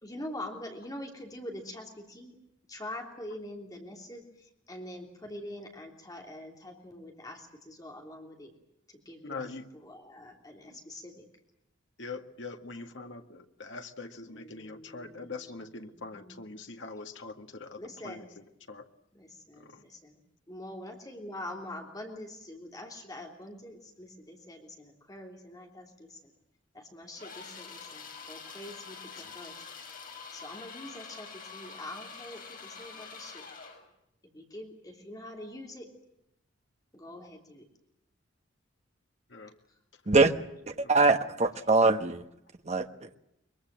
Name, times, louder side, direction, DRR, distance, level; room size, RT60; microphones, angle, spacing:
voice 1, 0.0-2.3 2.7-4.2 4.7-8.5 9.0-9.4 9.8-11.2 14.3-15.3 16.1-16.3 17.8-18.3 19.1-20.2 20.5-26.2 26.7-29.6 30.3-33.4 34.3-35.9 36.9-37.6, left 1 dB, 20° left, 1 dB, 3.2 m, -44 dB
voice 2, 9.2-9.7 10.6-10.8 12.0-18.9 19.6-19.8 29.1-29.3 39.3-39.5 40.8-40.9, left 3 dB, 70° left, 5 dB, 2.0 m, -43 dB
sound 1, 27.2-33.8, left 5 dB, 45° left, 5.4 m, -46 dB
voice 3, 40.7-42.2 42.6-43.1, right 3 dB, 35° right, 7 dB, 1.3 m, -23 dB
23.0 x 23.0 x 7.5 m, 0.83 s
head